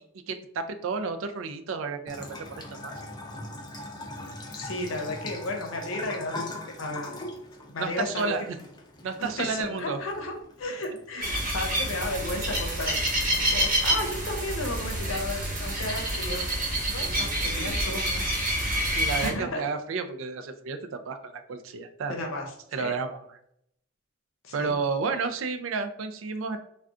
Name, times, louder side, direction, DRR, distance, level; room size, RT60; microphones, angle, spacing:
voice 1, 0.3-2.9 7.8-8.6 9.0-10.0 17.2-17.7 18.9-22.2 22.7-23.2 24.5-26.6, right 4 dB, 80° right, 8 dB, 0.4 m, -31 dB
Bathtub (filling or washing) / Trickle dribble, 2.1-13.0, left 2 dB, 20° left, 0.4 m, -42 dB
voice 2, 4.5-6.5 6.8-7.2 7.7-8.3 9.2-13.0 13.5-16.4 16.9-18.4 19.2-19.6 22.1-22.4 22.8-22.9 24.4-24.8, left 2 dB, 85° left, 2 dB, 0.7 m, -33 dB
sound 1, 11.2-19.3, right 1 dB, 45° right, 1.0 m, -28 dB
2.4 x 2.2 x 3.6 m, 0.72 s
head